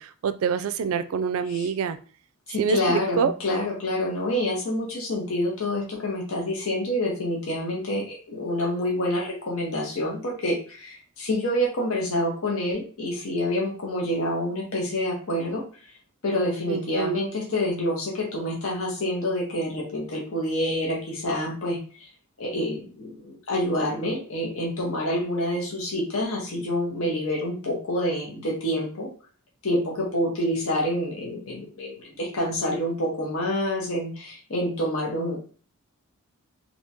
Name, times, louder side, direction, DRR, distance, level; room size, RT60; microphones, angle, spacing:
voice 1, 0.0-2.0 2.6-3.3 16.7-17.2, right 6 dB, 65° right, 12 dB, 0.3 m, -26 dB
voice 2, 2.5-15.6 16.2-22.1 22.4-29.1 29.6-35.4, left 1 dB, 65° left, -2 dB, 1.0 m, -27 dB
3.5 x 2.9 x 2.7 m, 0.39 s
head